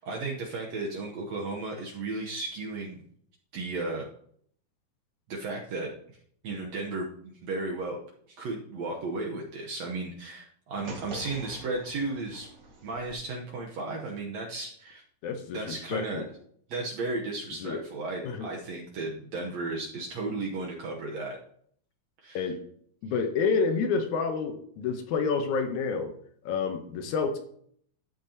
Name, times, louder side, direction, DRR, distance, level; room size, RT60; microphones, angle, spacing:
voice 1, 0.0-3.0 3.5-4.1 5.3-5.9 6.4-8.0 8.3-12.5 12.8-15.0 15.5-16.2 16.7-21.4 22.2-22.5, right 3 dB, 65° right, 0 dB, 2.0 m, -34 dB
sound 1, 10.8-13.1, right 2 dB, 40° right, 2.1 m, -44 dB
voice 2, 15.2-16.3 17.6-17.8 18.2-18.5 22.3-22.6 23.0-26.1 26.4-27.4, left 5 dB, 75° left, 6 dB, 2.2 m, -29 dB
13.0 x 8.4 x 2.9 m, 0.62 s
omnidirectional pair, 3.6 m